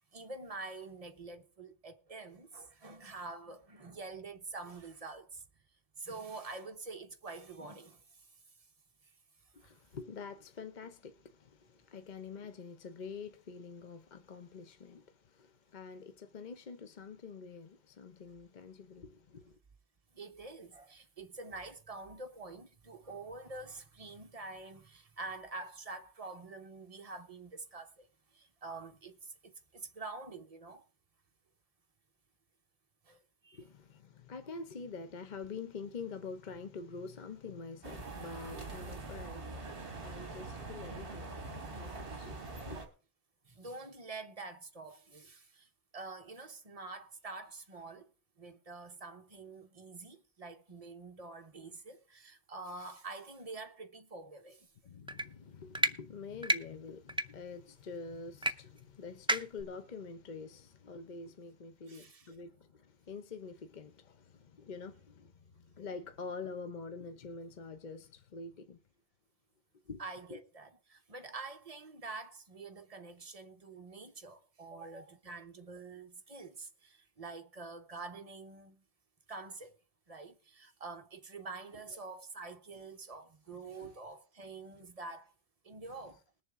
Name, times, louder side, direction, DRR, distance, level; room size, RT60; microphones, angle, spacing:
voice 1, 0.0-5.4 6.0-8.3 9.0-9.1 9.6-9.7 20.1-28.1 28.3-30.8 33.0-33.6 41.6-41.7 43.4-54.7 61.9-62.3 70.0-78.8 79.3-79.8 80.1-85.3 85.6-86.2, right 3 dB, 35° right, 1.1 m, -47 dB
voice 2, 9.5-19.6 33.5-41.4 41.7-42.8 54.8-68.8 69.9-70.0 70.3-70.4 83.8-83.9 85.7-85.8, left 4 dB, 45° left, 0.9 m, -46 dB
sound 1, 37.8-42.9, right 3 dB, 55° right, 2.0 m, -43 dB
sound 2, 55.1-55.3 55.7-55.9 56.4-56.6 57.1-57.3 58.4-58.5 58.8-58.9 59.3-59.6, right 1 dB, 10° right, 0.3 m, -29 dB
21.0 x 7.0 x 3.6 m
omnidirectional pair, 1.1 m